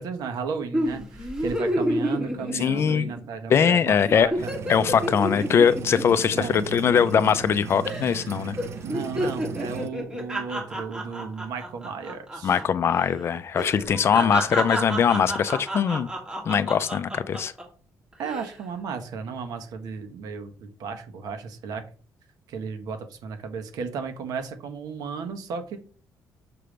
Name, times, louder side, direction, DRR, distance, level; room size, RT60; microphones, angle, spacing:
voice 1, 0.0-4.3 6.4-6.7 8.8-12.6 14.1-14.4 18.2-21.8 22.5-25.8, right 5 dB, 70° right, 7 dB, 1.1 m, -34 dB
sound 1, 0.7-3.3 3.6-3.8 4.1-7.5 7.8-8.3 8.6-12.6 12.9-13.1 13.5-17.6 18.1-18.5, equal, 10° right, 1.6 m, -30 dB
voice 2, 2.6-3.1 3.5-4.3 4.7-8.6 12.4-16.1 16.5-17.5, left 7 dB, 40° left, 14 dB, 0.4 m, -21 dB
sound 2, 4.4-9.9, right 6 dB, 45° right, 0.5 m, -37 dB
6.7 x 3.3 x 5.0 m, 0.40 s
cardioid pair, 160°, 7 cm